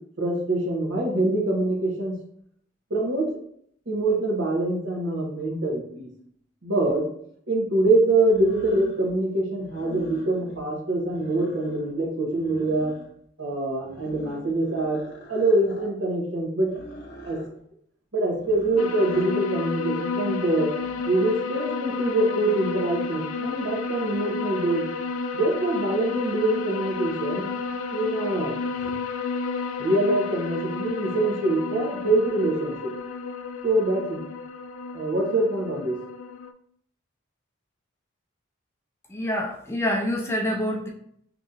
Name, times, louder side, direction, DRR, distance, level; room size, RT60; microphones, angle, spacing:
voice 1, 0.2-2.1 2.9-3.3 3.9-6.1 6.6-7.0 7.5-12.9 13.4-15.0 15.3-16.7 17.2-17.4 18.1-20.7 21.1-24.8 25.3-27.5 27.9-28.9 29.8-32.9 33.6-34.2 34.9-36.0, right 2 dB, 60° right, -1 dB, 1.0 m, -24 dB
sound 1, 6.8-6.9 8.2-9.1 9.6-10.6 11.0-11.9 12.3-13.3 13.8-15.9 16.7-17.5 18.3-19.4 20.6-21.3, equal, 50° left, 0.8 m, -44 dB
sound 2, 18.8-36.5, left 4 dB, 85° left, 0.3 m, -32 dB
voice 2, 39.1-40.9, left 1 dB, 15° left, 0 dB, 0.4 m, -26 dB
2.9 x 2.6 x 3.7 m, 0.65 s
head